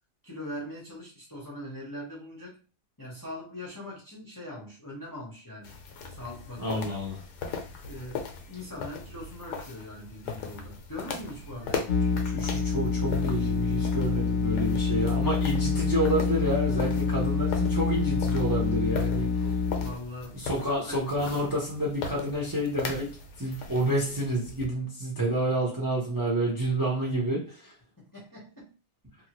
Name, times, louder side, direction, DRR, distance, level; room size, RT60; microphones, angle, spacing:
voice 1, 0.2-2.6 3.0-5.7 6.1-6.8 7.8-11.9 19.3-21.4 28.0-28.7, left 1 dB, 15° left, -4 dB, 0.7 m, -41 dB
sound 1, 5.6-24.7, left 5 dB, 80° left, 1.2 m, -39 dB
voice 2, 6.6-7.2 12.1-19.4 20.3-27.7, right 1 dB, 20° right, -3 dB, 0.6 m, -29 dB
sound 2, 11.9-19.9, left 5 dB, 60° left, 0.9 m, -27 dB
2.9 x 2.7 x 2.9 m, 0.32 s
omnidirectional pair, 1.8 m